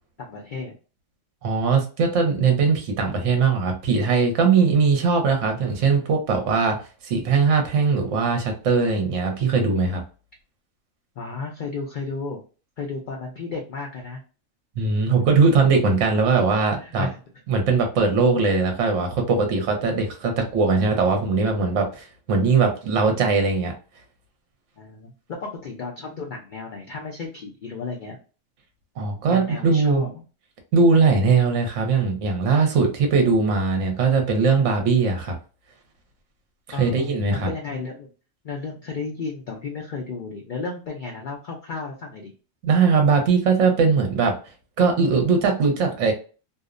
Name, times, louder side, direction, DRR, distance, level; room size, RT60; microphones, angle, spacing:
voice 1, 0.2-0.7 11.2-12.4 12.8-14.2 16.8-17.2 20.7-21.6 24.8-28.2 29.3-30.2 36.7-38.1 38.4-42.3, left 4 dB, 75° left, 1 dB, 0.4 m, -33 dB
voice 2, 1.4-6.8 7.0-10.0 14.8-17.1 17.5-23.7 29.0-30.0 30.7-35.3 36.7-37.5 42.6-44.3 44.8-46.1, right 4 dB, 70° right, 3 dB, 1.0 m, -20 dB
2.6 x 2.0 x 2.4 m, 0.35 s
omnidirectional pair, 1.4 m